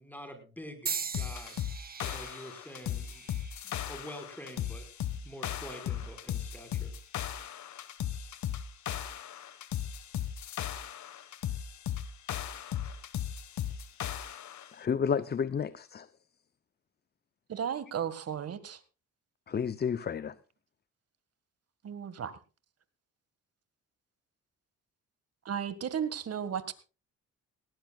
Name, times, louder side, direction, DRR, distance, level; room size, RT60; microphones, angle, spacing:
voice 1, 0.0-1.6 2.0-3.2 3.6-4.8 5.1-6.9, equal, 5° left, 6 dB, 5.0 m, -46 dB
sound 1, 0.9-5.0 5.7-6.1 7.1-7.3, right 6 dB, 30° right, 0.8 m, -41 dB
sound 2, 1.1-14.7, left 10 dB, 70° left, 1.5 m, -37 dB
voice 2, 14.7-16.1 19.5-20.4, left 7 dB, 35° left, 15 dB, 0.6 m, -31 dB
voice 3, 17.5-18.8 21.8-22.4 25.5-26.7, right 8 dB, 55° right, 13 dB, 1.8 m, -34 dB
18.5 x 18.0 x 2.4 m, 0.33 s
cardioid pair, 90°, 30 cm